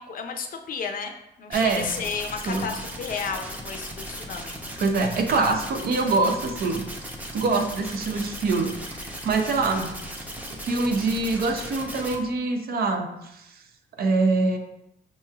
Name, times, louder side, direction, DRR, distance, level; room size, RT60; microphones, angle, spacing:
voice 1, 0.0-4.6, left 5 dB, 50° left, 5 dB, 0.6 m, -33 dB
sound 1, 1.5-12.2, equal, 10° right, 0.7 m, -37 dB
voice 2, 1.5-1.9 2.5-2.7 4.8-6.9 7.3-9.9 10.6-13.6 14.0-14.6, right 3 dB, 60° right, 5 dB, 0.6 m, -24 dB
5.4 x 3.0 x 2.4 m, 0.84 s
cardioid pair, 95°, 18 cm